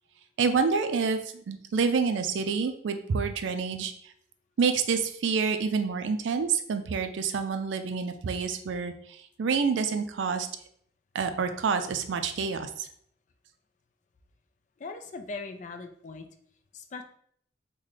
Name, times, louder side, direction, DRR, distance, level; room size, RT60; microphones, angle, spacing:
voice 1, 0.4-1.2 1.5-3.9 4.6-10.5 11.1-12.9, right 5 dB, 85° right, 8 dB, 0.4 m, -28 dB
voice 2, 14.8-16.3 16.7-17.0, left 3 dB, 40° left, 7 dB, 0.3 m, -39 dB
3.2 x 2.2 x 3.8 m, 0.65 s
head